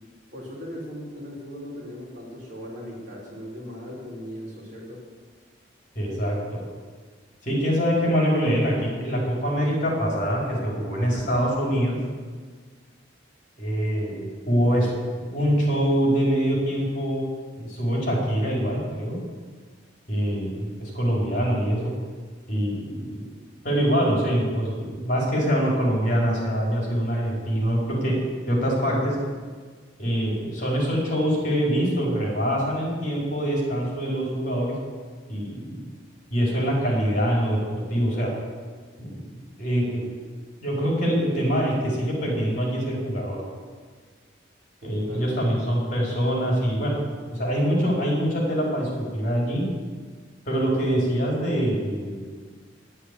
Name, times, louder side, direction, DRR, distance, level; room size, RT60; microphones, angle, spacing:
voice 1, 0.3-5.0 20.2-20.5 44.8-45.5, equal, 45° right, -5 dB, 4.6 m, -38 dB
voice 2, 5.9-6.6 7.4-12.0 13.6-14.9 15.2-17.2 17.5-19.1 20.1-21.9 22.5-23.2 23.6-28.1 28.5-29.1 30.0-34.8 35.3-35.8 36.3-38.3 39.0-39.1 39.6-40.1 40.6-43.4 44.8-47.0 47.3-49.6 50.4-52.2, equal, 45° left, -4 dB, 4.9 m, -24 dB
11.0 x 9.9 x 8.5 m, 1.5 s
head